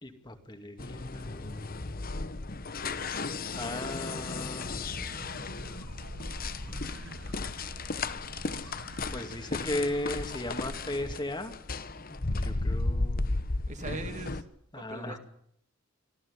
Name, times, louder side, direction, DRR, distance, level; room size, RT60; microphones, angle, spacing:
voice 1, 0.0-1.6 3.5-5.6 6.7-6.8 8.5-8.9 9.1-11.6 12.1-13.5 14.7-15.2, left 1 dB, 20° left, 6 dB, 2.3 m, -37 dB
sound 1, 0.8-14.4, left 3 dB, 45° left, 1.1 m, -35 dB
sound 2, 4.9-10.6, right 2 dB, 60° right, 1.3 m, -48 dB
voice 2, 13.7-14.4 14.7-15.2, right 2 dB, 35° right, 7 dB, 2.0 m, -40 dB
25.0 x 15.0 x 9.7 m, 0.70 s
head